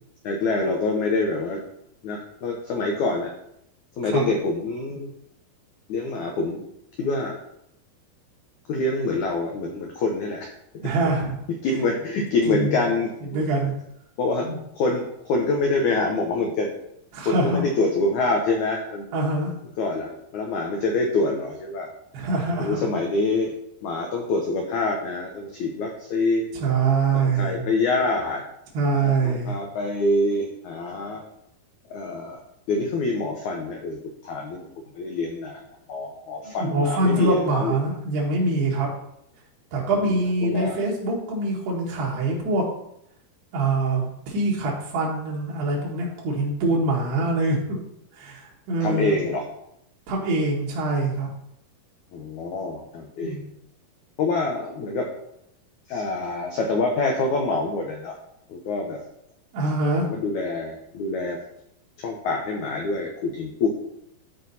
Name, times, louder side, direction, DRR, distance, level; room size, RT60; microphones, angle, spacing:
voice 1, 0.2-1.6 2.0-3.3 4.0-5.1 5.9-6.6 7.0-7.4 8.7-10.5 10.7-10.9 11.6-13.4 14.2-14.5 14.7-16.7 17.3-19.1 19.8-21.9 22.6-23.5 23.8-26.5 27.1-28.4 28.9-31.2 31.9-32.4 32.7-34.7 35.0-35.6 35.9-37.8 39.9-40.1 40.4-40.8 48.8-49.4 52.1-53.3 54.2-55.1 55.9-58.2 58.5-59.0 60.1-61.4 62.0-63.7, left 3 dB, 75° left, 1 dB, 1.8 m, -26 dB
voice 2, 10.8-11.4 12.2-12.8 13.3-13.7 14.4-14.6 17.1-17.6 19.1-19.5 22.1-22.9 26.6-27.6 28.7-29.6 36.4-38.9 39.7-42.7 43.5-47.8 48.1-49.2 50.1-51.3 53.2-53.4 59.5-60.1, right 2 dB, 90° right, -3 dB, 3.8 m, -24 dB
13.0 x 4.4 x 4.1 m, 0.77 s
omnidirectional pair, 4.5 m